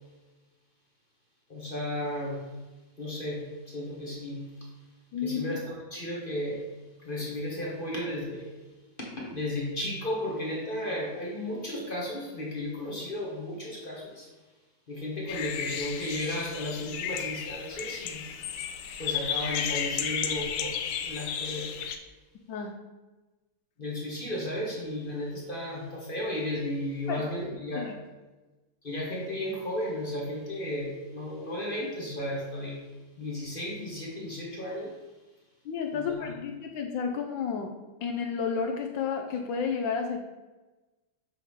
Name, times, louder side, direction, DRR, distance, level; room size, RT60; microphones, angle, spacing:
voice 1, 1.5-2.5 3.0-4.5 5.2-6.6 7.0-8.5 9.0-14.3 14.9-18.2 19.0-20.8 21.0-21.7 23.8-27.9 28.8-32.8 33.2-35.0 36.1-36.2, left 1 dB, 35° left, -2 dB, 0.9 m, -34 dB
voice 2, 5.1-5.6 22.5-22.7 27.1-27.9 35.6-37.7 38.0-40.2, left 6 dB, 75° left, 4 dB, 1.2 m, -31 dB
sound 1, 15.3-22.0, left 8 dB, 90° left, 1.5 m, -33 dB
6.9 x 3.6 x 4.6 m, 1.2 s
omnidirectional pair, 2.4 m